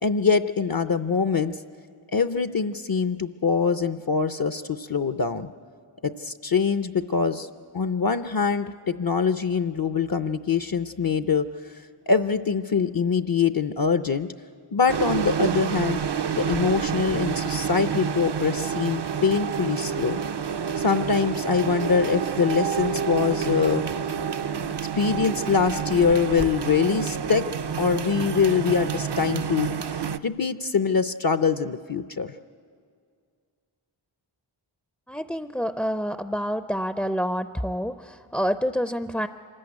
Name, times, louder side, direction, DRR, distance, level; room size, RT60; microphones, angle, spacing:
voice 1, 0.0-1.6 2.1-5.5 6.0-7.5 7.7-11.5 12.1-14.3 14.7-16.0 16.4-20.2 20.8-23.8 25.0-27.5 27.8-32.3, left 5 dB, 45° left, 11 dB, 0.6 m, -24 dB
sound 1, 14.9-30.2, right 7 dB, 55° right, 0.6 m, -28 dB
voice 2, 35.1-39.3, equal, 5° left, 11 dB, 0.5 m, -28 dB
25.0 x 14.0 x 9.6 m, 2.2 s
wide cardioid pair, 50°, 48 cm